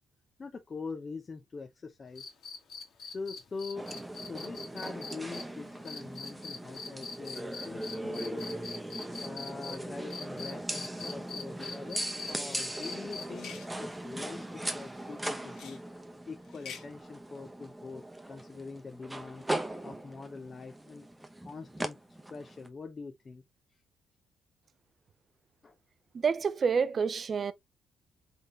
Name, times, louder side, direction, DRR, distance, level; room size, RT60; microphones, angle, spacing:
voice 1, 0.4-2.3 3.0-3.9 4.1-8.7 9.2-13.5 13.8-15.8 16.3-18.0 18.3-19.5 19.8-21.1 21.4-22.0 22.3-23.4 25.6-25.7, left 4 dB, 35° left, 0.8 m, -43 dB
sound 1, 2.2-9.8 10.1-13.5 15.1-15.2, left 4 dB, 65° left, 1.9 m, -42 dB
sound 2, 3.8-22.7, right 1 dB, 10° right, 0.9 m, -39 dB
sound 3, 12.3-12.7 13.3-13.7 15.5-15.8 16.4-16.9, left 7 dB, 85° left, 1.8 m, -46 dB
voice 2, 26.1-27.5, right 6 dB, 45° right, 0.6 m, -28 dB
3.9 x 3.8 x 3.1 m
cardioid pair, 90°, 0 cm